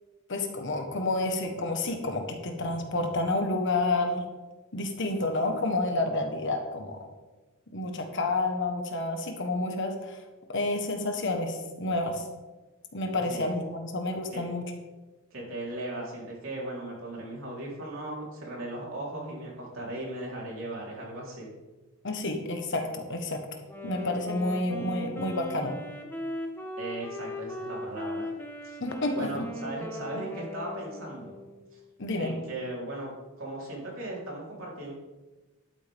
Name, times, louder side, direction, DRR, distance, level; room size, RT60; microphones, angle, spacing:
voice 1, 0.3-4.2 4.7-7.0 7.7-10.2 10.5-12.2 12.9-14.6 22.0-23.4 23.8-25.8 28.8-29.4 32.0-32.4, left 2 dB, 60° left, 4 dB, 1.4 m, -29 dB
voice 2, 15.3-21.5 26.8-28.3 28.6-28.8 29.1-31.4 31.7-31.8 32.2-33.1 33.4-34.9, right 1 dB, 65° right, -4 dB, 4.0 m, -37 dB
Wind instrument woodwind instrument, 23.7-31.7, left 1 dB, 10° left, 1.1 m, -38 dB
11.5 x 8.9 x 3.7 m, 1.2 s
head